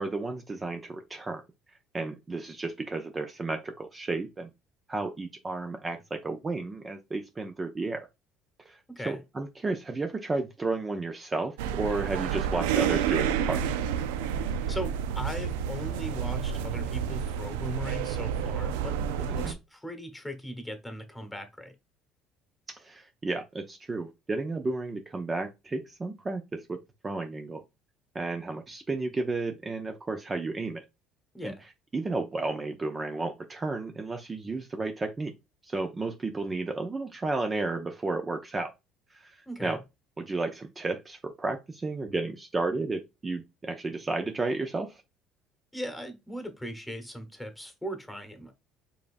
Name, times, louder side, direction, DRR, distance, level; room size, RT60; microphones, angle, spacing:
voice 1, 0.0-1.4 1.9-4.5 4.9-8.1 8.7-8.8 9.0-13.6 19.4-19.6 22.7-27.6 28.1-30.8 31.4-31.5 31.9-35.3 35.6-38.7 39.1-39.8 40.2-45.0, right 3 dB, 25° right, 0.6 m, -32 dB
voice 2, 8.9-9.2 14.7-21.7 31.3-31.7 39.5-39.8 45.7-48.5, equal, 5° left, 1.3 m, -39 dB
sound 1, 11.6-19.5, right 8 dB, 85° right, 0.3 m, -29 dB
4.9 x 3.6 x 2.5 m
supercardioid pair, 75°, 0 cm